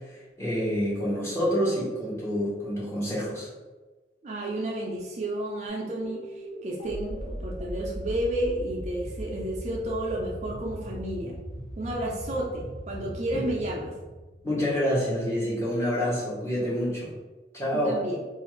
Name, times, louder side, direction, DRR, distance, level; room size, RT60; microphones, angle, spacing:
voice 1, 0.1-3.5 13.3-13.4 14.4-17.1 17.5-18.0, equal, 15° left, -7 dB, 0.8 m, -27 dB
voice 2, 4.2-11.3 11.8-14.0 17.7-18.2, right 1 dB, 40° right, -3 dB, 0.4 m, -31 dB
sound 1, 5.7-15.0, equal, 75° left, 1.1 m, -39 dB
2.5 x 2.4 x 3.0 m, 1.2 s
head